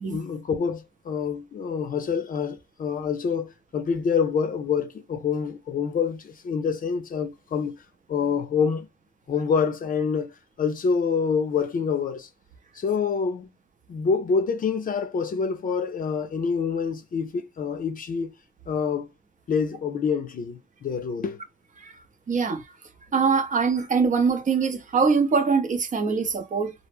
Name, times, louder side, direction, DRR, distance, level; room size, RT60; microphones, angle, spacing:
voice 1, 0.0-7.8 8.1-8.9 9.3-10.3 10.6-12.3 12.8-13.5 13.9-18.3 18.7-19.1 19.5-21.4, left 6 dB, 45° left, 0.6 m, -26 dB
voice 2, 22.3-22.6 23.1-26.7, right 5 dB, 40° right, 0.7 m, -23 dB
2.1 x 2.1 x 3.3 m
cardioid pair, 90°, 20 cm